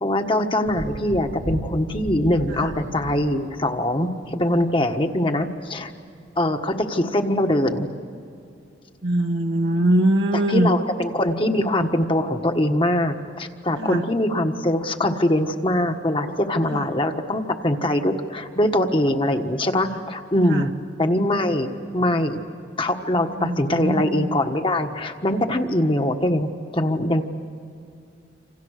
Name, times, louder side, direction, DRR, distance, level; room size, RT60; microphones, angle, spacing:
voice 1, 0.0-5.9 6.4-7.9 10.3-20.7 21.0-22.4 22.8-27.2, left 1 dB, 30° left, 5 dB, 1.5 m, -22 dB
Thunder, 0.6-4.5 5.8-5.9, right 1 dB, 40° right, 1.0 m, -35 dB
voice 2, 9.0-10.7 13.8-14.0 20.5-20.6 23.4-24.3, right 1 dB, 70° right, 2 dB, 1.3 m, -21 dB
28.0 x 27.0 x 6.6 m, 2.5 s
head